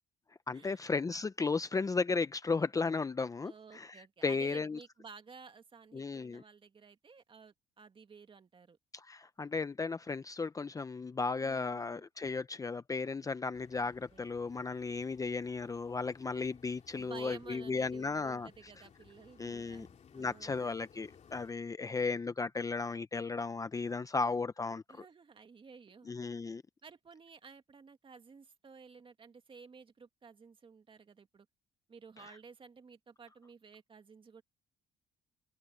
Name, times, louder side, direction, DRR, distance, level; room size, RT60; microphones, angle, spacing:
voice 1, 0.5-4.8 5.9-6.4 8.9-18.5 19.4-19.9 20.1-25.0 26.1-26.6, left 4 dB, 20° left, 0.7 m, -35 dB
voice 2, 3.4-8.8 11.4-12.0 13.8-14.3 17.0-20.7 24.9-26.2 26.8-31.5 31.9-34.4, right 5 dB, 30° right, 2.0 m, -54 dB
sound 1, 13.5-21.5, left 7 dB, 40° left, 2.5 m, -61 dB
cardioid pair, 110°, 17 cm